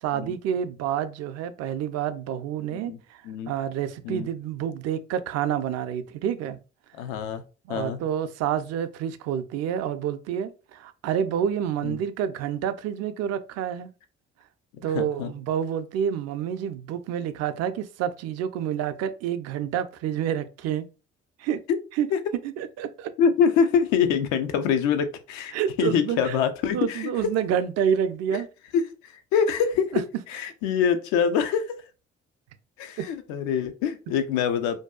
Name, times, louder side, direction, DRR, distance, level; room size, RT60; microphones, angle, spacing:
voice 1, 0.0-6.6 7.7-13.9 14.8-20.9 21.4-21.6 22.0-22.1 22.6-23.1 25.5-26.4 26.7-28.5 29.9-30.0 33.0-33.1, right 9 dB, 60° right, 0.4 m, -28 dB
voice 2, 7.0-7.4 7.7-8.0 11.8-12.0 14.9-15.3 21.7-21.8 22.1-22.2 23.2-27.1 28.3-28.4 28.7-28.8 29.3-30.0 30.3-31.8 32.8-34.8, left 7 dB, 75° left, 0.5 m, -24 dB
2.6 x 2.2 x 2.2 m
hypercardioid pair, 50°, 30 cm